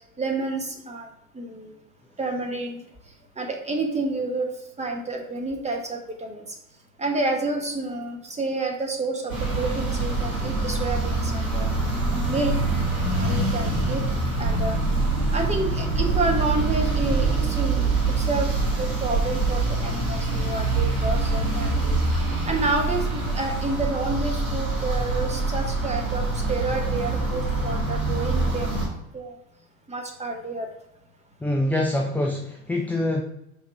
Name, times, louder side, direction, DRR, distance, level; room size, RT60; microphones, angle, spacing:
voice 1, 0.2-1.1 1.3-1.7 2.2-2.8 3.4-4.5 4.8-6.4 7.0-11.7 12.2-12.6 13.1-14.0 14.4-14.8 15.3-18.5 18.7-22.0 22.5-28.8 29.1-29.4 29.9-30.7, right 3 dB, 15° right, 3 dB, 1.4 m, -29 dB
sound 1, 9.3-28.9, right 3 dB, 90° right, 2.2 m, -25 dB
voice 2, 31.4-33.2, left 1 dB, 5° left, 1 dB, 0.6 m, -25 dB
5.8 x 4.0 x 4.3 m, 0.81 s
figure-of-eight pair, 75°, 42 cm